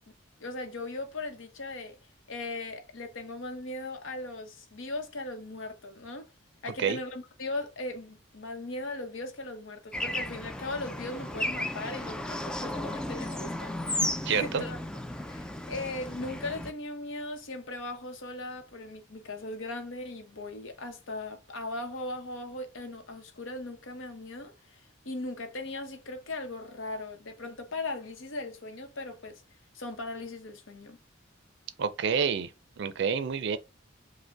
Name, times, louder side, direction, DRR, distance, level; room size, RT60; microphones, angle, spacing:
voice 1, 0.4-2.0 2.3-6.3 6.6-14.8 15.3-29.4 29.7-31.0, left 2 dB, 85° left, 0.9 m, -38 dB
Bird / Traffic noise roadway noise, 9.9-16.7, left 1 dB, 5° left, 0.3 m, -34 dB
voice 2, 14.2-14.6 31.8-32.5 32.8-33.6, right 6 dB, 65° right, 0.4 m, -28 dB
5.2 x 2.1 x 3.4 m
head